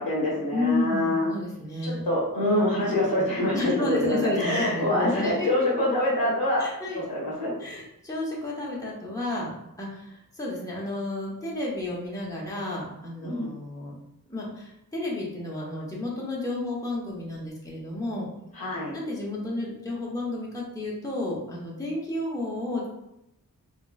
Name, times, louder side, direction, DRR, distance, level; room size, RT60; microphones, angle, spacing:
voice 1, 0.0-1.3 1.8-6.7 6.9-7.5 13.2-13.5 18.6-18.9, left 1 dB, 75° left, -4 dB, 1.2 m, -25 dB
voice 2, 0.5-2.0 3.5-5.5 6.6-7.0 7.6-9.5 9.8-14.0 14.3-18.3 18.9-22.9, left 2 dB, 10° left, -5 dB, 0.9 m, -31 dB
3.0 x 2.9 x 2.3 m, 0.84 s
wide cardioid pair, 60°, 37 cm